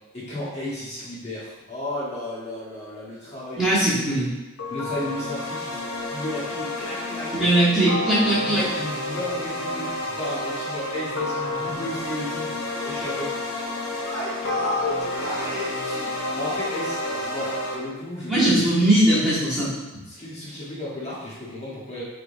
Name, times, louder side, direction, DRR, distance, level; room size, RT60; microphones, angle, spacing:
voice 1, 0.1-4.3 4.7-5.8 6.1-7.4 8.4-12.6 12.8-13.3 14.0-18.7 20.1-22.0, left 1 dB, 30° left, -9 dB, 1.1 m, -33 dB
voice 2, 3.6-4.3 7.3-8.6 18.3-20.0, right 1 dB, 5° right, -12 dB, 1.3 m, -20 dB
sound 1, 4.6-17.7, left 2 dB, 90° left, 0.9 m, -30 dB
4.6 x 3.4 x 2.6 m, 1.1 s
head